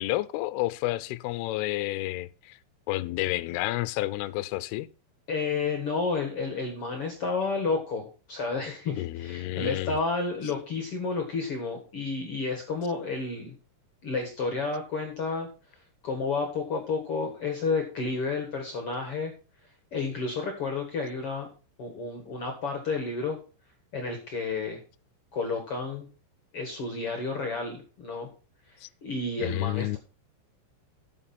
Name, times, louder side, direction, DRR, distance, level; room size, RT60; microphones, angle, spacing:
voice 1, 0.0-2.6 2.9-4.9 9.0-10.0 28.8-28.9 29.4-30.0, left 17 dB, 85° left, 2.3 m, -30 dB
voice 2, 5.3-13.5 14.0-15.5 16.0-19.3 19.9-21.5 21.8-23.4 23.9-24.8 25.3-26.1 26.5-28.3 29.0-30.0, left 4 dB, 70° left, 1.4 m, -31 dB
11.5 x 7.4 x 4.2 m
omnidirectional pair, 5.2 m